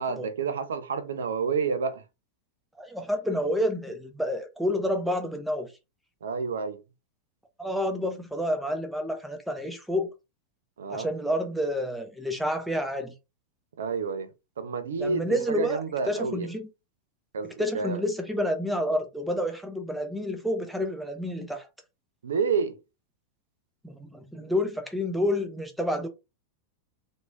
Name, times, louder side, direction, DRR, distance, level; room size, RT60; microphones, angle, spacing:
voice 1, 0.0-2.0 6.2-6.8 10.8-11.1 13.8-14.3 14.6-16.5 17.3-18.0 22.2-22.8, right 5 dB, 65° right, 0.5 m, -29 dB
voice 2, 2.8-5.7 7.6-10.1 10.9-13.1 15.0-16.7 17.6-21.7 23.8-26.1, equal, ahead, 0.7 m, -29 dB
3.0 x 2.7 x 2.2 m
figure-of-eight pair, 90°, 0 cm